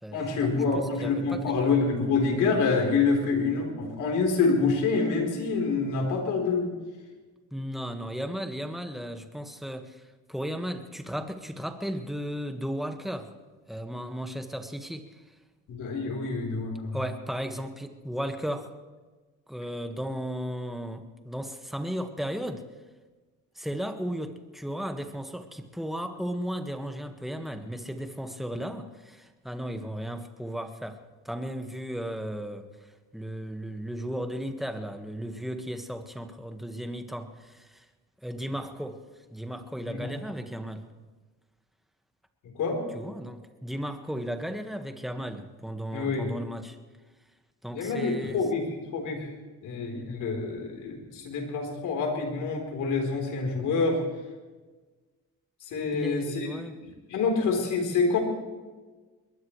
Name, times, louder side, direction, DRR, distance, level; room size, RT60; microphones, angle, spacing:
voice 1, 0.1-6.8 15.7-17.0 39.8-40.1 42.4-42.8 45.9-46.3 47.7-49.3 49.6-54.0 55.6-56.5 56.8-58.2, left 4 dB, 85° left, 2 dB, 4.2 m, -27 dB
voice 2, 0.7-1.7 7.5-10.0 10.3-13.3 13.7-15.2 16.9-18.7 19.5-22.6 23.5-32.7 33.1-37.8 38.2-39.0 39.3-40.9 42.9-46.8 47.6-48.4 55.9-56.8, equal, ahead, 6 dB, 1.7 m, -35 dB
21.5 x 20.5 x 3.3 m, 1.3 s
cardioid pair, 90°, 30 cm